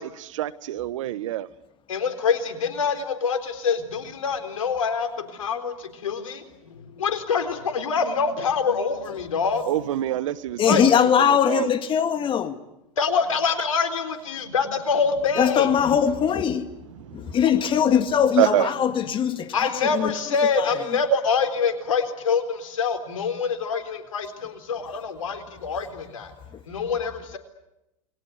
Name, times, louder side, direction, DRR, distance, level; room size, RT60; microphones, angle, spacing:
voice 1, 0.0-1.5 9.7-11.7 16.9-17.4 18.4-18.7, right 13 dB, 70° right, 1.2 m, -26 dB
voice 2, 1.9-9.6 10.6-10.8 13.0-15.7 19.5-26.3 26.7-27.4, left 5 dB, 85° left, 4.0 m, -25 dB
voice 3, 10.6-12.6 15.4-16.7 17.1-20.1 20.6-20.8, left 8 dB, 30° left, 2.1 m, -21 dB
29.0 x 22.0 x 8.1 m
hypercardioid pair, 100°, 17 cm